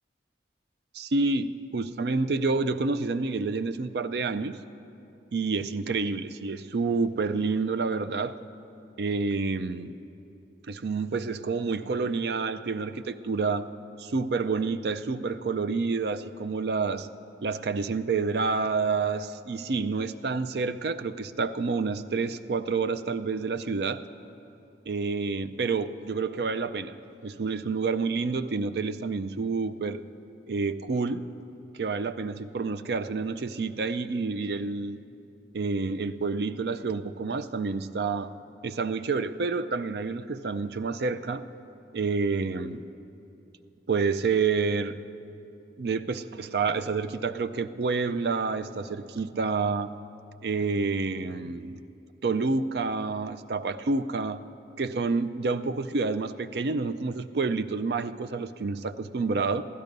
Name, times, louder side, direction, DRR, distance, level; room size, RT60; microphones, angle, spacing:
voice 1, 0.9-4.6 5.3-8.3 9.0-9.9 10.7-13.7 14.0-17.1 17.4-24.0 24.9-26.9 27.2-30.0 30.5-31.2 31.7-35.0 35.5-38.3 38.6-41.4 41.9-42.8 43.9-45.0 45.8-49.9 50.4-51.8 52.2-54.4 54.8-59.6, right 4 dB, 60° right, 11 dB, 0.4 m, -28 dB
15.5 x 12.0 x 5.2 m, 2.8 s
head